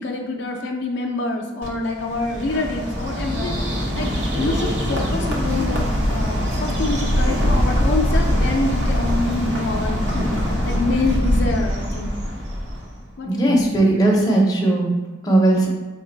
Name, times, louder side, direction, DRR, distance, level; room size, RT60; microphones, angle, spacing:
voice 1, 0.0-4.1 4.4-12.1 13.2-13.7, left 2 dB, 65° left, 2 dB, 0.4 m, -26 dB
Bird, 1.6-13.0, equal, 65° right, 0.9 m, -22 dB
voice 2, 13.2-14.9 15.2-15.7, right 2 dB, 20° left, -2 dB, 0.6 m, -17 dB
4.7 x 2.2 x 3.9 m, 1.3 s
head